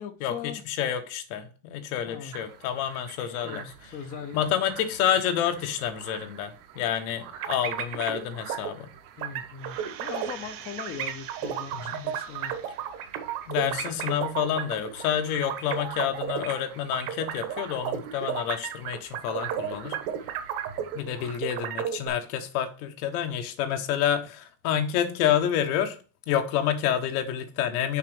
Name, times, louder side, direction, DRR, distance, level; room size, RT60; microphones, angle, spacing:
voice 1, 0.0-0.6 2.0-2.3 3.4-4.5 9.2-12.5 13.6-13.9, left 7 dB, 20° left, 0.4 m, -40 dB
voice 2, 0.7-3.6 4.3-8.9 11.9-12.1 13.5-20.0 20.9-26.0 26.3-28.0, left 9 dB, 80° left, 1.3 m, -28 dB
sound 1, 2.3-21.4, right 8 dB, 80° right, 1.3 m, -47 dB
sound 2, 7.4-8.2 8.5-8.7 9.2-10.5 10.8-16.6 16.9-21.1 21.4-22.1, right 9 dB, 55° right, 1.2 m, -32 dB
sound 3, 9.6-13.0 13.4-13.5, right 9 dB, 35° right, 0.6 m, -46 dB
5.8 x 3.9 x 6.0 m
cardioid pair, 165°, 43 cm